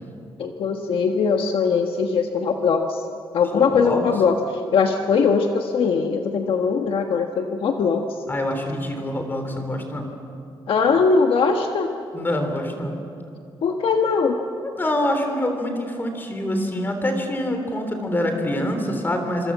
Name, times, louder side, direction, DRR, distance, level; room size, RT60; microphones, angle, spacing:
voice 1, 0.4-3.0 3.3-8.0 10.7-11.9 13.6-14.4, left 5 dB, 65° left, 4 dB, 1.4 m, -21 dB
voice 2, 3.5-4.0 8.3-10.1 12.1-13.0 14.6-19.5, left 1 dB, 20° left, 5 dB, 3.5 m, -25 dB
26.5 x 26.0 x 7.4 m, 2.5 s
wide cardioid pair, 170°, 10 cm